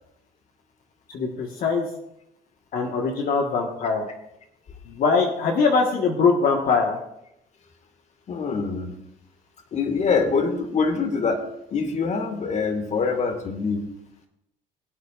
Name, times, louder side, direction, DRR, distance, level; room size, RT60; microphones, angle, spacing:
voice 1, 1.1-1.9 2.7-4.1 4.9-7.0, left 4 dB, 60° left, 1 dB, 1.5 m, -22 dB
voice 2, 8.3-8.9 9.7-11.4 11.7-13.9, left 4 dB, 45° left, 6 dB, 1.8 m, -24 dB
22.0 x 8.4 x 2.5 m, 0.80 s
cardioid pair, 110°, 17 cm